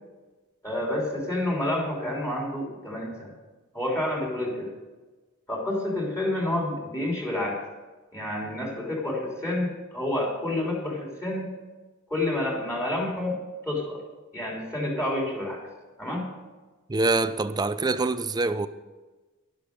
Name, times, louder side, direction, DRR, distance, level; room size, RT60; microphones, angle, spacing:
voice 1, 0.6-3.3 3.7-4.7 5.5-7.6 8.1-11.5 12.1-14.0 14.3-15.6 16.0-16.3, left 1 dB, 15° left, 3.3 m, -29 dB
voice 2, 16.9-18.7, right 3 dB, 20° right, 0.5 m, -25 dB
11.5 x 11.5 x 5.3 m
head